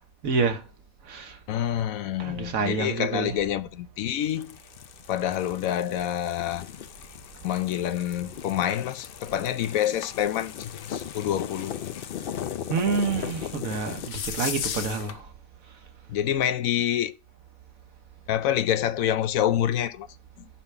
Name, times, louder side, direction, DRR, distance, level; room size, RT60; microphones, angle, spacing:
voice 1, 0.2-0.6 1.1-1.4 2.2-3.4 12.7-15.2, right 4 dB, 75° right, 1.5 m, -27 dB
voice 2, 1.5-4.6 5.1-6.7 7.4-11.7 16.1-17.1 18.3-20.1, left 11 dB, 80° left, 1.0 m, -27 dB
sound 1, 4.2-15.2, left 9 dB, 60° left, 0.6 m, -37 dB
5.8 x 5.7 x 4.7 m
omnidirectional pair, 1.4 m